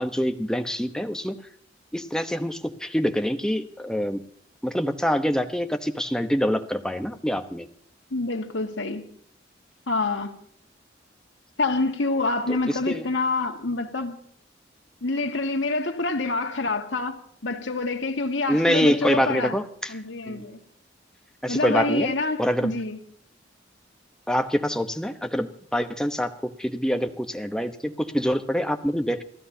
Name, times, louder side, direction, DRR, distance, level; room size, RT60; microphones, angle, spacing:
voice 1, 0.0-1.4 1.9-4.2 4.6-7.7 12.5-13.1 18.5-19.9 20.3-20.4 21.4-22.1 22.4-22.7 24.3-29.2, equal, 5° left, 1.0 m, -25 dB
voice 2, 8.1-9.0 9.9-10.3 11.6-14.2 15.0-19.6 19.9-20.6 21.5-23.0, left 3 dB, 85° left, 1.8 m, -27 dB
29.5 x 14.0 x 2.8 m
head